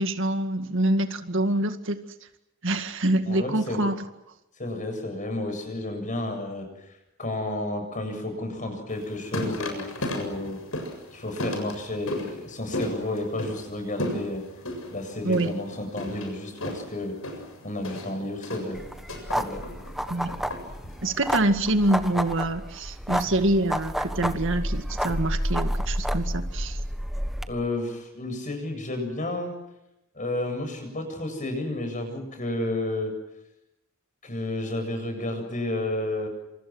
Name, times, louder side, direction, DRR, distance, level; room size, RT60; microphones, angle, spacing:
voice 1, 0.0-2.0 2.6-4.0 15.2-15.5 20.1-20.4 21.0-26.8, right 1 dB, 65° right, 7 dB, 2.0 m, -25 dB
voice 2, 3.3-3.8 4.6-6.7 7.2-10.6 11.1-14.4 14.9-17.2 17.6-18.8 19.3-19.6 27.5-29.5 30.1-33.1 34.2-36.3, left 1 dB, 40° left, 7 dB, 7.8 m, -31 dB
sound 1, 8.9-21.2, left 1 dB, 80° left, 7.4 m, -35 dB
sound 2, 18.7-27.5, equal, ahead, 1.5 m, -30 dB
28.5 x 27.5 x 6.3 m, 0.89 s
head